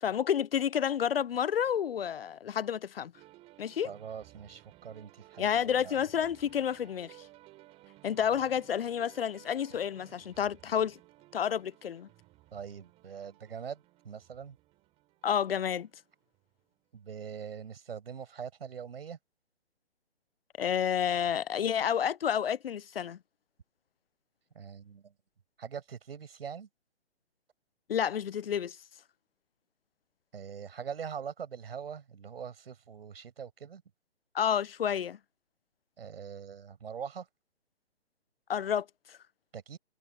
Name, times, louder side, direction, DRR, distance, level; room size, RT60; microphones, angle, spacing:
voice 1, 0.0-3.1 3.6-3.9 5.4-7.2 8.0-11.0 11.3-12.1 15.2-15.9 20.6-23.2 27.9-28.8 34.3-35.2 38.5-39.2, left 8 dB, 60° left, 0.6 m, -30 dB
sound 1, 3.1-16.9, right 18 dB, 15° right, 4.8 m, -58 dB
voice 2, 3.8-6.0 12.5-14.6 16.9-19.2 24.5-25.1 25.6-26.7 30.3-33.8 36.0-37.3 39.5-39.8, right 7 dB, 60° right, 6.0 m, -42 dB
hypercardioid pair, 155°, 33 cm